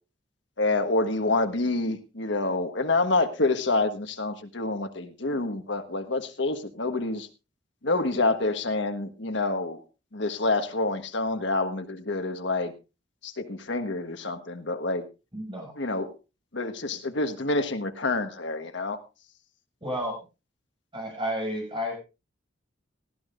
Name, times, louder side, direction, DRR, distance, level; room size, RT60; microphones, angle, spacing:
voice 1, 0.6-7.3 7.8-9.8 10.1-12.7 13.2-15.0 15.8-16.1 16.5-19.0, left 2 dB, 65° left, 7 dB, 1.4 m, -27 dB
voice 2, 15.3-15.7 19.8-20.2 20.9-22.0, equal, 25° right, 0 dB, 6.3 m, -31 dB
19.0 x 12.5 x 2.5 m, 0.29 s
head